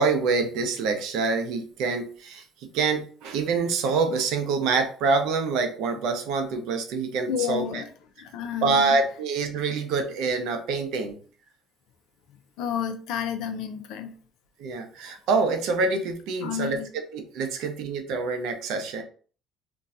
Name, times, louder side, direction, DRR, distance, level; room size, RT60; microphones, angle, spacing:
voice 1, 0.0-7.8 8.6-11.2 14.6-16.8 17.1-19.0, right 4 dB, 75° right, 0.6 m, -26 dB
voice 2, 7.3-7.9 8.2-9.0 12.3-14.2 16.4-16.9, left 8 dB, 75° left, 0.5 m, -31 dB
2.5 x 2.3 x 4.1 m
supercardioid pair, 85°, 0 cm